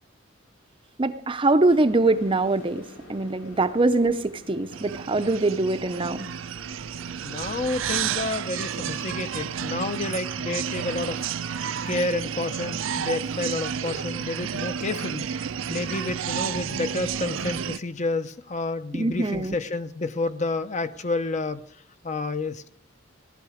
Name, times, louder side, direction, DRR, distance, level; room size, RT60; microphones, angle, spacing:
voice 1, 1.0-2.8 3.1-6.2 19.0-19.6, right 2 dB, 25° right, 11 dB, 0.6 m, -23 dB
sound 1, 1.7-15.1, equal, 90° left, 6.9 m, -51 dB
sound 2, 4.7-17.8, right 7 dB, 70° right, 0.5 m, -31 dB
voice 2, 7.2-11.3 11.8-15.2 15.7-21.6 22.0-22.7, left 3 dB, 35° left, 11 dB, 0.7 m, -30 dB
18.0 x 12.5 x 4.9 m, 0.65 s
head